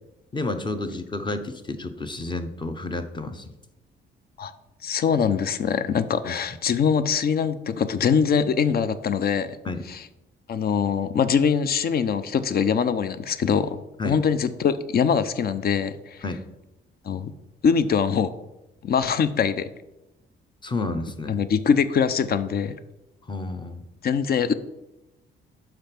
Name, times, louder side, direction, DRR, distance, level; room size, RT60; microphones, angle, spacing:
voice 1, 0.3-3.5 6.2-6.3 9.6-9.8 14.0-14.2 16.2-16.4 20.6-21.4 23.3-23.9, left 2 dB, 25° left, 9 dB, 0.8 m, -30 dB
voice 2, 4.8-9.6 9.9-10.0 10.5-16.2 17.0-17.3 17.6-18.3 18.8-19.7 21.3-22.8 24.0-24.5, left 6 dB, 50° left, 13 dB, 0.6 m, -23 dB
5.8 x 5.1 x 5.8 m, 0.96 s
cardioid pair, 90°, 20 cm